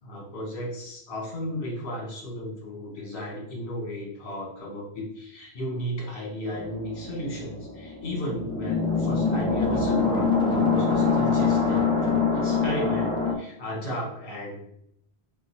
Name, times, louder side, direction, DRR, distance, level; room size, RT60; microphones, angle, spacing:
voice 1, 0.0-14.6, equal, 60° left, -2 dB, 1.4 m, -34 dB
sound 1, 6.5-13.3, left 4 dB, 5° left, 0.4 m, -24 dB
3.6 x 2.1 x 4.3 m, 0.71 s
omnidirectional pair, 1.1 m